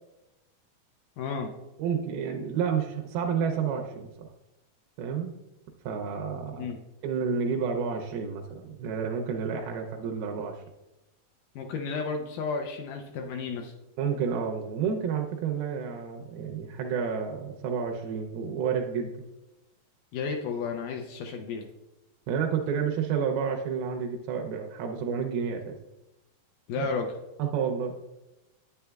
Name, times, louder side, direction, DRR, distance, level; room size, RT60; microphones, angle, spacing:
voice 1, 1.2-1.5 6.5-6.8 11.6-13.7 20.1-21.7 26.7-27.1, left 4 dB, 80° left, 4 dB, 2.0 m, -32 dB
voice 2, 1.8-4.3 5.0-5.3 5.8-6.7 7.0-10.6 14.0-19.1 22.3-25.8 26.8-26.9 27.4-27.9, right 6 dB, 85° right, 2 dB, 2.5 m, -30 dB
9.8 x 9.3 x 2.3 m, 0.99 s
omnidirectional pair, 4.3 m